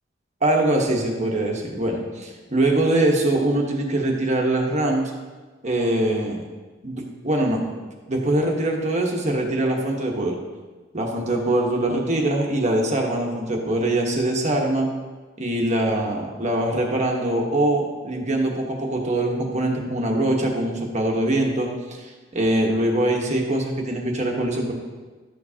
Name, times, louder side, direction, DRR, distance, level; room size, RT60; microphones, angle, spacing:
voice 1, 0.4-5.1 5.6-6.4 6.8-7.6 8.1-10.4 10.9-14.9 15.4-24.7, right 1 dB, 40° right, 1 dB, 1.2 m, -23 dB
12.5 x 7.2 x 2.9 m, 1.3 s
head